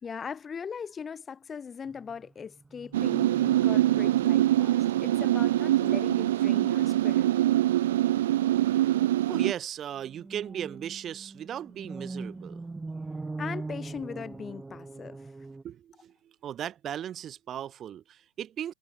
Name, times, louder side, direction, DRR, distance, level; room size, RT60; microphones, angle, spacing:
voice 1, 0.0-7.3 13.4-15.3, left 6 dB, 20° left, 4.3 m, -40 dB
sound 1, 1.9-4.7 4.9-5.2 5.5-5.8 7.2-7.6 10.0-15.6, right 3 dB, 10° right, 6.2 m, -42 dB
sound 2, 2.9-9.5, right 14 dB, 85° right, 0.5 m, -24 dB
voice 2, 9.3-12.6 15.6-18.7, right 10 dB, 35° right, 6.7 m, -37 dB
supercardioid pair, 120°, 0 cm